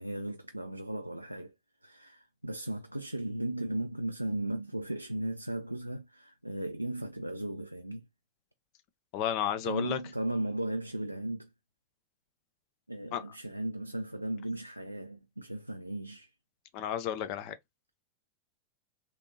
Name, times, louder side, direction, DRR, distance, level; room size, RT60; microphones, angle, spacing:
voice 1, 0.0-1.5 1.8-8.1 9.6-11.5 12.9-16.3, right 1 dB, 90° right, 0.3 m, -36 dB
voice 2, 9.1-10.0 13.1-13.2 16.7-17.5, left 10 dB, 45° left, 0.6 m, -32 dB
3.4 x 2.8 x 2.7 m
figure-of-eight pair, 90°, 0 cm